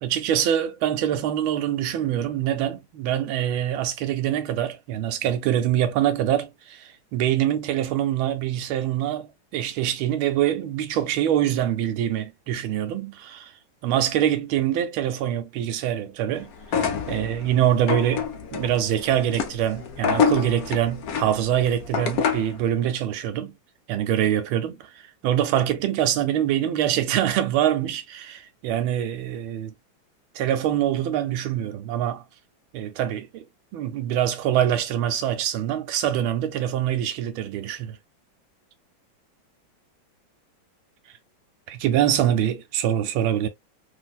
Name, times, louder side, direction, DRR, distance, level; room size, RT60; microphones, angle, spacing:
voice 1, 0.0-13.5 13.8-16.5 17.1-23.5 23.9-24.9 25.2-29.7 30.3-32.2 32.7-33.5 33.7-38.0 41.7-43.5, right 11 dB, 85° right, 1.4 m, -24 dB
sound 1, 16.6-22.6, left 6 dB, 75° left, 0.8 m, -27 dB
3.3 x 2.6 x 2.3 m
omnidirectional pair, 2.2 m